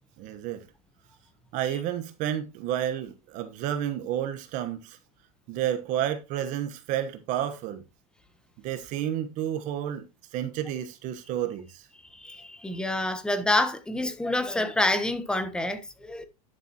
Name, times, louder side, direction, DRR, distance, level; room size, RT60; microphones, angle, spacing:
voice 1, 0.2-0.7 1.5-5.0 5.5-7.8 8.6-10.1 10.3-11.9, right 11 dB, 45° right, 1.2 m, -31 dB
voice 2, 12.1-16.3, left 1 dB, 5° left, 1.0 m, -27 dB
11.5 x 6.8 x 2.9 m
supercardioid pair, 145°, 18 cm